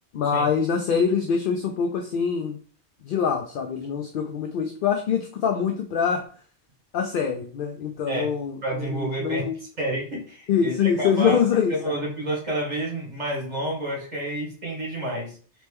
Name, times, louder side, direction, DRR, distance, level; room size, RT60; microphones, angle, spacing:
voice 1, 0.1-2.6 3.0-6.2 6.9-8.6 8.8-9.6 10.5-11.9, left 7 dB, 60° left, 4 dB, 0.6 m, -24 dB
voice 2, 8.6-9.4 9.8-11.4 11.7-15.4, right 1 dB, 40° right, -2 dB, 1.8 m, -29 dB
4.2 x 3.0 x 3.5 m, 0.42 s
omnidirectional pair, 1.1 m